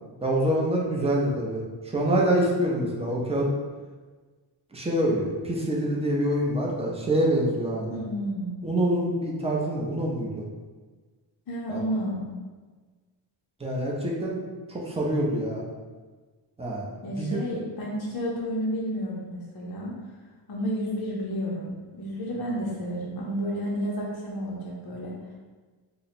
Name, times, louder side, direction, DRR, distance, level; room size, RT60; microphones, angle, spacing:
voice 1, 0.2-3.5 4.7-8.0 8.6-10.4 11.7-11.8 13.6-14.4 14.7-15.6 16.6-16.9 17.2-17.4, right 1 dB, 15° right, -3 dB, 0.5 m, -26 dB
voice 2, 7.9-8.6 11.5-12.3 17.0-20.0 20.5-25.2, equal, 50° left, -4 dB, 0.6 m, -31 dB
2.8 x 2.1 x 4.0 m, 1.4 s
wide cardioid pair, 145°, 48 cm